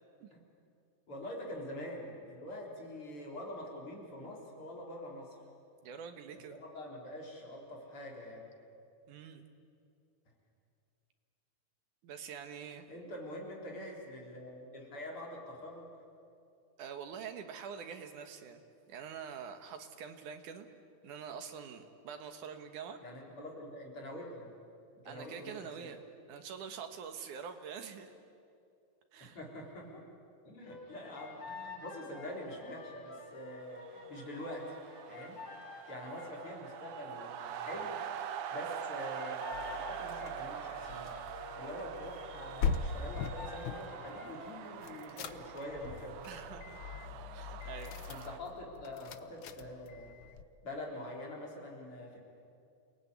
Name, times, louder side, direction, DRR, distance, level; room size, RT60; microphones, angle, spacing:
voice 1, 1.1-5.4 6.5-8.4 12.9-15.9 23.0-24.5 24.9-25.9 29.2-30.1 30.4-34.8 35.1-35.4 35.7-38.0 38.5-41.1 41.6-46.3 48.1-50.1 50.6-52.2, left 1 dB, 45° left, -1 dB, 4.9 m, -45 dB
voice 2, 5.8-6.6 9.1-9.5 12.0-12.8 16.8-18.6 18.9-20.7 21.0-23.0 25.1-26.0 26.3-28.1 29.1-29.4 46.2-46.8 47.3-48.0, right 7 dB, 85° right, 7 dB, 3.1 m, -45 dB
sound 1, 30.6-36.8 38.6-44.8, left 3 dB, 90° left, 4.4 m, -49 dB
sound 2, 33.6-48.4, right 9 dB, 65° right, 2.0 m, -44 dB
sound 3, 39.5-43.8 44.8-50.4, left 6 dB, 70° left, 1.2 m, -41 dB
29.0 x 19.5 x 9.6 m, 2.5 s
omnidirectional pair, 3.4 m